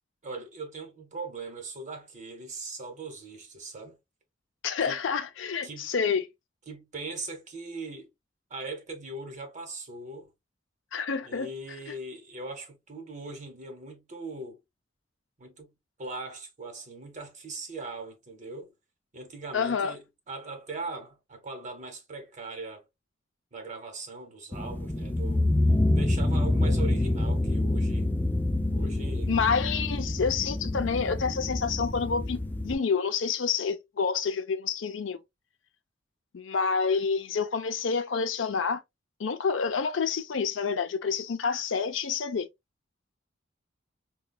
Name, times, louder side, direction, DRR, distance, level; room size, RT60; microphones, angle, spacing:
voice 1, 0.2-4.0 4.9-5.0 5.6-5.9 6.7-8.1 8.5-10.3 11.2-14.6 15.4-15.7 16.0-18.7 19.1-22.8 23.5-25.5 25.9-28.1 28.7-29.3, right 3 dB, 40° right, 1.0 m, -40 dB
voice 2, 4.6-6.3 10.9-11.5 11.9-12.0 19.5-20.0 29.3-35.2 36.3-38.8 39.2-42.5, left 5 dB, 75° left, 0.5 m, -28 dB
sound 1, 24.5-32.7, left 1 dB, 10° left, 0.3 m, -27 dB
4.9 x 2.3 x 2.2 m
head